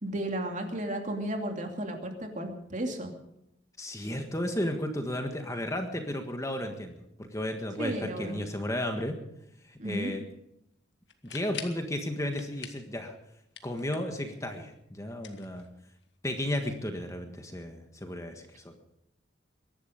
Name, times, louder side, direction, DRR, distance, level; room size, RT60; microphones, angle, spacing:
voice 1, 0.0-3.1 7.8-8.4 9.8-10.1, right 1 dB, 40° right, 3 dB, 2.6 m, -33 dB
voice 2, 3.8-9.2 9.7-10.2 11.2-13.1 13.6-15.7 16.2-18.5, left 1 dB, 15° left, 5 dB, 1.6 m, -33 dB
sound 1, 11.1-11.9 12.3-12.9 13.2-14.2 15.1-16.1, left 8 dB, 65° left, 1.8 m, -44 dB
22.5 x 11.5 x 5.2 m, 0.81 s
head